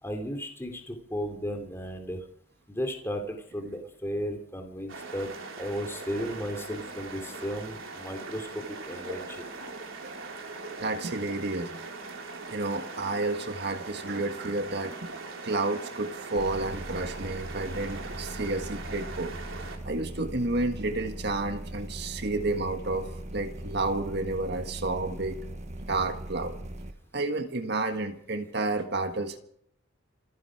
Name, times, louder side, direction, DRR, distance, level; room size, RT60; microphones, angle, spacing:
voice 1, 0.0-2.2 2.7-5.3 5.6-9.5, equal, 10° left, 4 dB, 3.1 m, -35 dB
sound 1, 4.9-19.8, right 3 dB, 75° right, 3.9 m, -41 dB
voice 2, 10.8-11.8 12.5-15.1 15.4-19.3 19.8-25.4 25.9-26.6 27.1-29.4, right 2 dB, 55° right, 7 dB, 1.6 m, -31 dB
sound 2, 16.4-26.9, right 1 dB, 35° right, 1.4 m, -40 dB
27.5 x 10.0 x 4.9 m, 0.65 s
head